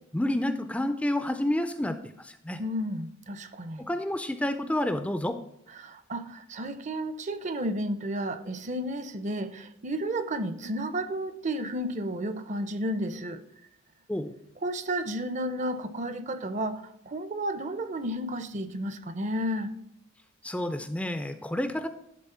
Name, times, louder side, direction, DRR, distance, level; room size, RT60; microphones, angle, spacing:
voice 1, 0.1-2.6 3.8-5.4 14.1-14.3 20.4-21.9, left 1 dB, 5° left, 0.4 m, -29 dB
voice 2, 2.6-3.9 5.8-13.4 14.6-19.7, right 1 dB, 35° right, 0.6 m, -32 dB
10.5 x 3.9 x 5.5 m
head